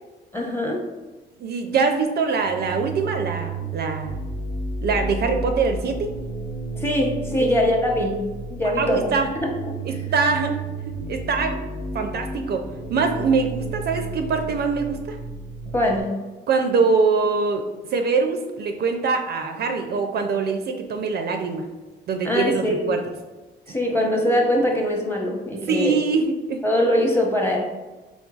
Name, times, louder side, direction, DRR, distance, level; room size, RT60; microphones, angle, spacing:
voice 1, 0.3-0.9 6.7-8.2 8.5-9.1 9.6-10.0 15.7-16.1 22.2-22.8 23.7-26.0 26.6-27.6, left 1 dB, 10° left, -1 dB, 0.8 m, -22 dB
voice 2, 1.4-4.2 4.8-6.1 7.4-7.5 8.6-9.3 9.9-10.6 11.1-11.6 11.9-12.6 12.9-15.2 16.5-17.6 17.9-21.7 22.1-23.0 25.7-26.6, right 4 dB, 55° right, 5 dB, 0.4 m, -23 dB
sound 1, 2.3-16.0, right 2 dB, 45° left, 0.6 m, -32 dB
3.8 x 3.5 x 2.3 m, 1.2 s
cardioid pair, 90°, 20 cm